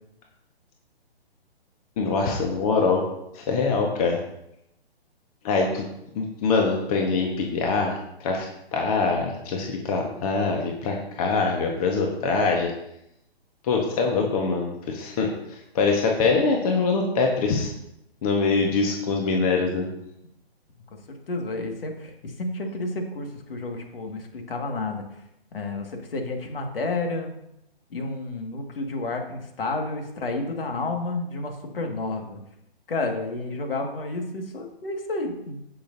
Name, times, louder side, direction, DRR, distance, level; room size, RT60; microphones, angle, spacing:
voice 1, 2.0-3.0 3.3-4.2 5.4-5.8 6.1-7.9 8.2-8.4 8.7-12.7 13.6-17.7 18.2-19.9, left 4 dB, 35° left, 1 dB, 1.4 m, -24 dB
voice 2, 20.9-25.0 25.5-27.4 27.9-32.4 32.9-35.6, left 2 dB, 60° left, 3 dB, 2.1 m, -31 dB
16.5 x 6.2 x 2.8 m, 0.82 s
figure-of-eight pair, 135°, 31 cm